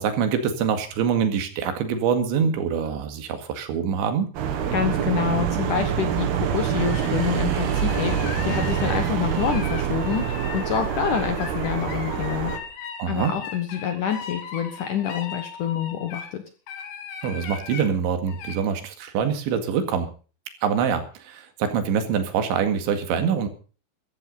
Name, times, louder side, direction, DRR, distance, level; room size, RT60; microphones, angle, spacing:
voice 1, 0.0-4.3 13.0-13.3 17.2-20.1 20.6-23.5, right 7 dB, 80° right, 8 dB, 4.3 m, -24 dB
sound 1, 4.4-12.6, right 8 dB, 65° right, 3.5 m, -25 dB
voice 2, 4.7-12.5 13.1-16.4, left 8 dB, 65° left, 8 dB, 2.2 m, -27 dB
sound 2, 6.7-16.3 16.7-17.9 18.3-18.6, left 7 dB, 85° left, 5.1 m, -38 dB
15.0 x 14.0 x 5.4 m, 0.38 s
omnidirectional pair, 5.3 m